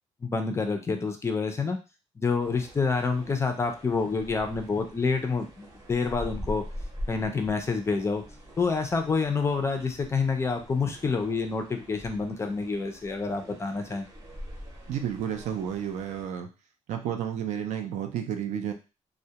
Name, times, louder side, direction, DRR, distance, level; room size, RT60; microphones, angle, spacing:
voice 1, 0.2-1.8 2.2-6.6 7.1-8.2 8.6-14.1, left 4 dB, 20° left, 5 dB, 0.4 m, -28 dB
sound 1, 2.4-16.3, equal, 25° right, 0.8 m, -43 dB
voice 2, 14.9-16.5 16.9-18.7, right 9 dB, 70° right, 5 dB, 0.5 m, -31 dB
2.2 x 2.1 x 2.8 m, 0.30 s
cardioid pair, 145°, 12 cm